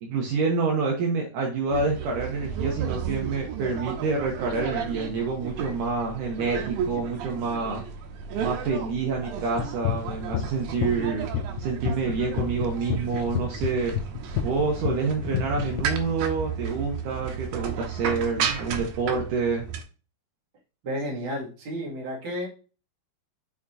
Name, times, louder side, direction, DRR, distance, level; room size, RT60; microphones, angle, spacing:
voice 1, 0.0-7.8 8.4-11.3 11.6-13.9 14.4-19.7, right 4 dB, 70° right, 0 dB, 2.5 m, -27 dB
sound 1, 1.7-19.8, right 7 dB, 90° right, 2.6 m, -33 dB
sound 2, 9.6-15.8, left 10 dB, 80° left, 2.3 m, -28 dB
voice 2, 20.8-22.5, equal, 40° right, -4 dB, 2.8 m, -32 dB
7.1 x 5.0 x 2.8 m, 0.36 s
omnidirectional pair, 4.0 m